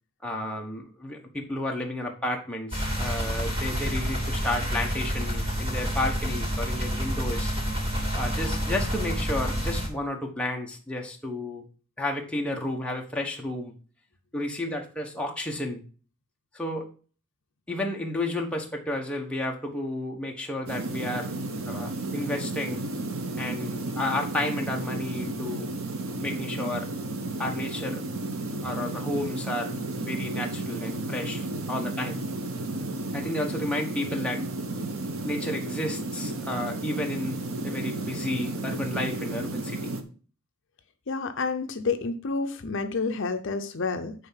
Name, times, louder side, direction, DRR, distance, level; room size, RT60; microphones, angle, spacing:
voice 1, 0.2-7.5 8.1-11.6 12.0-13.7 14.3-15.8 16.5-16.9 17.7-21.4 21.7-22.8 23.4-25.7 26.2-26.9 27.4-28.0 28.6-29.7 30.0-32.2 33.1-34.4 35.2-39.9, left 1 dB, 5° left, 0 dB, 1.1 m, -32 dB
sound 1, 2.7-9.9, equal, 25° right, 2.5 m, -28 dB
sound 2, 20.7-40.0, right 2 dB, 75° right, 1.0 m, -33 dB
voice 2, 41.1-44.1, left 4 dB, 60° left, 7 dB, 0.6 m, -29 dB
9.4 x 3.6 x 5.7 m, 0.39 s
head